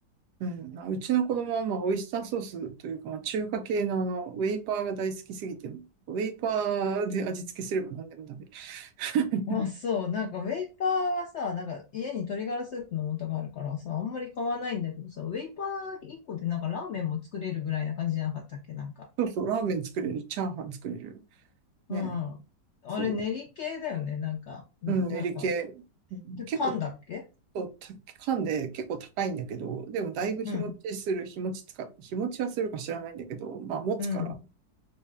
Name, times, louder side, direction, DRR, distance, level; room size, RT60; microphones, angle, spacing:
voice 1, 0.4-9.4 19.2-21.1 21.9-22.2 23.0-23.2 24.9-25.8 26.1-26.6 27.5-34.3, right 5 dB, 75° right, 8 dB, 1.2 m, -31 dB
voice 2, 9.5-18.9 21.9-22.4 22.8-25.4 26.4-27.3 30.4-30.7 34.0-34.3, left 6 dB, 80° left, 1 dB, 0.6 m, -32 dB
4.1 x 2.1 x 3.4 m, 0.29 s
omnidirectional pair, 1.8 m